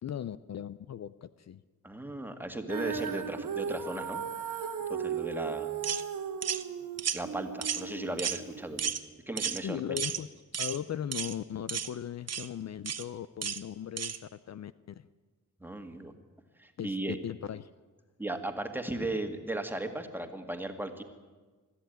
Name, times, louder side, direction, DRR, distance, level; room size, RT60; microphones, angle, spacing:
voice 1, 0.0-1.6 9.6-15.1 16.8-17.0 17.2-17.7, left 9 dB, 55° left, 15 dB, 0.6 m, -38 dB
voice 2, 1.8-4.2 4.9-5.7 7.1-8.8 9.3-9.9 15.6-16.1 16.6-17.2 18.2-21.0, right 2 dB, 5° right, 6 dB, 1.9 m, -36 dB
Female singing, 2.7-8.9, right 7 dB, 90° right, 1.7 m, -36 dB
sound 1, 5.8-6.0 6.4-6.6 7.0-7.2 7.6-7.9 8.2-8.4 8.8-9.0 9.4-9.6 10.0-10.2 10.5-10.8 11.1-11.3 11.7-11.9 12.3-12.5 12.9-13.0 13.4-13.6 14.0-14.2, right 8 dB, 55° right, 0.9 m, -33 dB
22.0 x 14.0 x 9.2 m, 1.3 s
wide cardioid pair, 120°, 32 cm